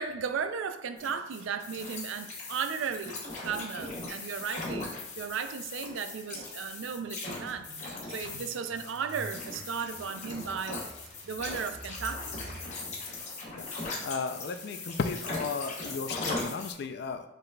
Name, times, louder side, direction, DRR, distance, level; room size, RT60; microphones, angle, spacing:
voice 1, 0.0-4.9 5.2-10.9 11.2-12.4, right 6 dB, 80° right, 10 dB, 0.4 m, -35 dB
sound 1, 1.0-16.7, left 2 dB, 35° left, 0.9 m, -39 dB
sound 2, 6.0-14.0, right 1 dB, 65° right, 0.8 m, -51 dB
voice 2, 14.0-17.3, left 5 dB, 55° left, 8 dB, 0.3 m, -34 dB
5.4 x 3.9 x 2.2 m, 0.84 s
head